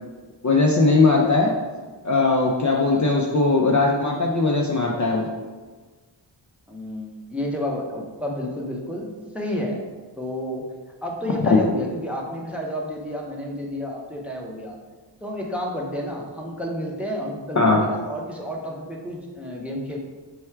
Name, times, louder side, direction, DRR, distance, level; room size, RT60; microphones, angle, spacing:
voice 1, 0.4-1.5 2.0-5.3 17.6-17.8, left 3 dB, 40° left, -1 dB, 0.5 m, -19 dB
voice 2, 6.7-9.8 10.2-10.6 11.0-14.8 15.2-20.0, left 1 dB, 5° right, -2 dB, 0.7 m, -30 dB
4.6 x 2.2 x 4.4 m, 1.3 s
wide cardioid pair, 75°, 47 cm